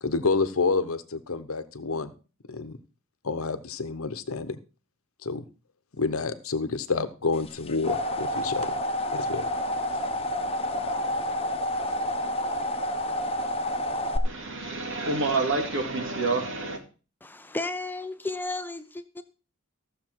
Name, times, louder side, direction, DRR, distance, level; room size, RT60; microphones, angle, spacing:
voice 1, 0.0-2.1 2.5-2.8 3.2-4.6 5.2-5.4 6.0-8.7 9.1-9.4 9.9-10.0, left 4 dB, 85° left, 0.9 m, -28 dB
sound 1, 7.5-14.2, left 1 dB, 30° left, 1.1 m, -29 dB
voice 2, 14.2-16.8, right 3 dB, 65° right, 2.3 m, -28 dB
voice 3, 17.2-19.2, left 2 dB, 10° left, 0.6 m, -33 dB
14.5 x 6.8 x 4.6 m
head